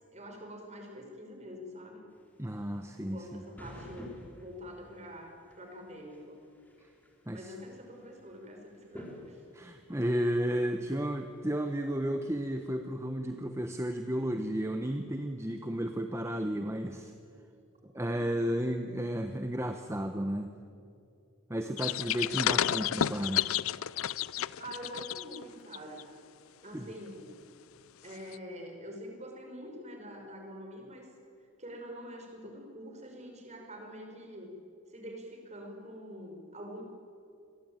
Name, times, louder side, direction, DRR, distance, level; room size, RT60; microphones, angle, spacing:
voice 1, 0.1-2.1 2.9-6.4 7.3-9.4 17.5-17.6 18.1-18.2 24.6-26.1 26.6-27.4 28.0-31.1 31.6-34.5 34.9-36.8, equal, 35° right, 2 dB, 5.5 m, -45 dB
sound 1, 2.1-12.7, equal, 10° left, 4.3 m, -52 dB
voice 2, 2.4-3.4 7.3-7.5 9.5-17.1 17.9-20.6 21.5-23.5 26.7-26.9, equal, 15° right, 7 dB, 1.1 m, -33 dB
sound 2, 21.8-25.4 25.7-26.0 28.3-28.4, left 10 dB, 85° left, 0.6 m, -31 dB
28.0 x 22.0 x 9.1 m, 2.5 s
head